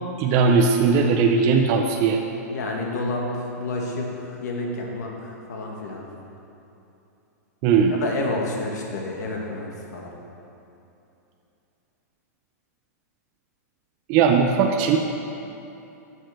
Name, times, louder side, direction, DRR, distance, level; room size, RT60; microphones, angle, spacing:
voice 1, 0.2-2.2 7.6-8.0 14.1-15.0, right 5 dB, 30° right, 2 dB, 0.5 m, -19 dB
voice 2, 2.5-6.0 8.0-10.1, left 2 dB, 75° left, 0 dB, 1.7 m, -30 dB
6.5 x 6.4 x 6.4 m, 2.8 s
supercardioid pair, 165°, 9 cm